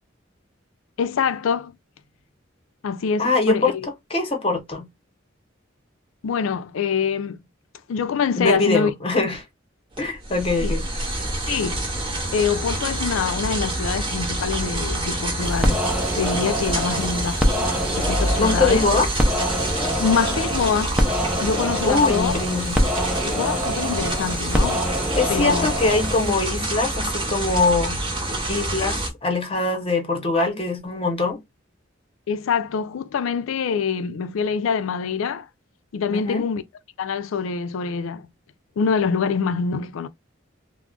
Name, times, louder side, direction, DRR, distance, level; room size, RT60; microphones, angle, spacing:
voice 1, 1.0-1.7 2.8-3.7 6.2-7.4 7.9-8.9 10.6-10.7 11.5-11.9 12.3-15.8 16.2-17.4 17.9-18.9 20.0-21.0 21.4-22.3 23.2-24.9 25.3-25.7 32.3-35.5 35.9-36.6 37.0-38.3 38.8-40.1, left 6 dB, 90° left, 0.4 m, -25 dB
voice 2, 3.2-3.7 4.1-4.9 8.4-9.4 10.0-10.8 18.4-19.1 21.8-22.8 25.1-28.0 28.5-31.4 36.1-36.5, left 3 dB, 30° left, 0.8 m, -22 dB
sound 1, 9.9-29.1, right 1 dB, 25° right, 0.8 m, -27 dB
sound 2, 15.4-26.3, equal, 5° right, 0.4 m, -25 dB
2.4 x 2.1 x 3.6 m
head